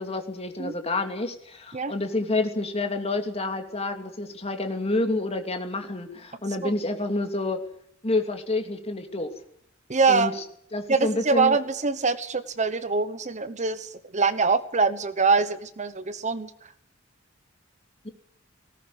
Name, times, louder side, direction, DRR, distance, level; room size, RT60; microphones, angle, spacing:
voice 1, 0.0-7.6 8.0-9.3 10.1-10.3 10.7-11.6, left 2 dB, 30° left, 5 dB, 2.8 m, -28 dB
voice 2, 9.9-10.3 10.9-16.5, right 4 dB, 35° right, 13 dB, 1.0 m, -24 dB
18.5 x 18.5 x 9.6 m, 0.68 s
head